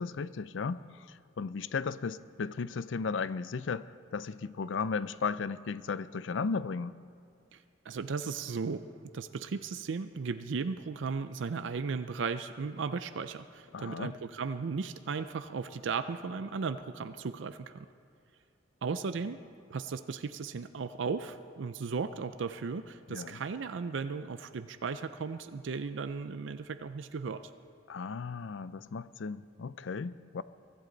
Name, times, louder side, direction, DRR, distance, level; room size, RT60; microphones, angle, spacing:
voice 1, 0.0-7.0 13.7-14.1 23.1-23.4 27.9-30.4, left 5 dB, 75° left, 16 dB, 0.5 m, -35 dB
voice 2, 7.5-8.8 9.1-17.9 18.8-19.4 19.7-27.5, right 5 dB, 75° right, 10 dB, 0.5 m, -36 dB
23.5 x 14.0 x 3.9 m, 2.4 s
head